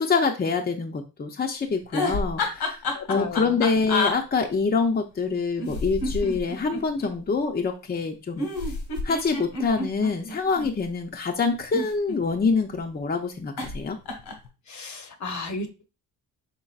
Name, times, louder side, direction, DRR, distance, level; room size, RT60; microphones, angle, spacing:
voice 1, 0.0-8.5 9.0-14.0, left 4 dB, 25° left, 3 dB, 0.6 m, -25 dB
sound 1, 1.8-4.1 5.6-7.1 8.4-10.7 11.6-12.5 13.6-13.8 14.1-14.5, left 2 dB, 80° left, 1.4 m, -29 dB
voice 2, 2.9-3.6 14.7-15.9, left 3 dB, 45° left, 7 dB, 0.8 m, -34 dB
5.4 x 3.7 x 2.4 m, 0.29 s
cardioid pair, 90°, 38 cm